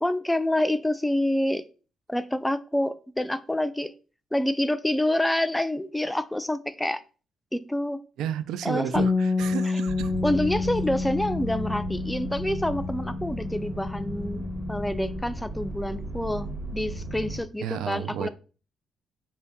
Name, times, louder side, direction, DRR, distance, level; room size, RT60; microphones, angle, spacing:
voice 1, 0.0-1.6 2.1-3.9 4.3-7.0 7.5-8.0 8.6-9.0 10.2-14.4 14.7-16.5 16.7-18.3, left 1 dB, 5° left, 0.4 m, -27 dB
voice 2, 8.2-10.1 17.6-18.3, right 9 dB, 85° right, 0.4 m, -32 dB
Bass guitar, 8.9-15.2, left 3 dB, 85° left, 1.0 m, -29 dB
sound 1, 9.9-17.4, right 1 dB, 35° right, 0.8 m, -35 dB
4.4 x 2.7 x 3.5 m
cardioid pair, 90°, 0 cm